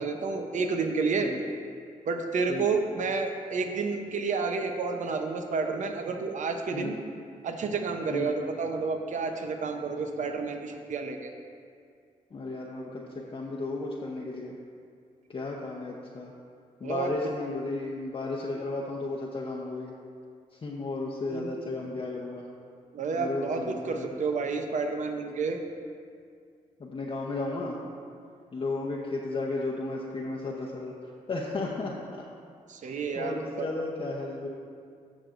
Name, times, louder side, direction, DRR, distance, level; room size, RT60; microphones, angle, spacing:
voice 1, 0.0-1.3 2.0-7.0 7.4-11.3 16.8-17.1 21.3-21.5 22.9-25.6 32.7-33.7, right 4 dB, 65° right, 5 dB, 0.8 m, -30 dB
voice 2, 12.3-14.6 15.3-16.3 16.8-19.9 20.6-22.5 23.2-24.2 26.8-27.8 28.5-32.2 32.8-34.5, left 3 dB, 40° left, -4 dB, 0.9 m, -34 dB
14.5 x 6.1 x 2.6 m, 2.2 s
cardioid pair, 85°, 14 cm